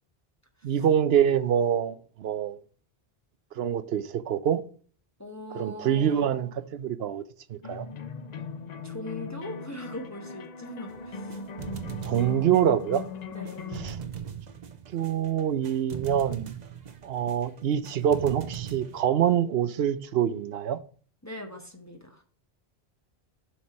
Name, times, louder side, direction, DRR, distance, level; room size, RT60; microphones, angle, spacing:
voice 1, 0.6-2.6 3.6-4.6 5.6-7.2 7.5-7.9 12.0-13.0 13.8-14.0 14.9-16.5 17.0-20.8, right 9 dB, 75° right, 0.8 m, -25 dB
voice 2, 5.2-6.2 8.8-11.4 13.3-13.6 21.2-22.2, left 1 dB, 15° left, 1.0 m, -40 dB
sound 1, 7.6-13.9, left 4 dB, 50° left, 0.6 m, -39 dB
sound 2, 10.9-19.0, right 7 dB, 45° right, 0.8 m, -40 dB
7.2 x 4.7 x 5.7 m
omnidirectional pair, 1.1 m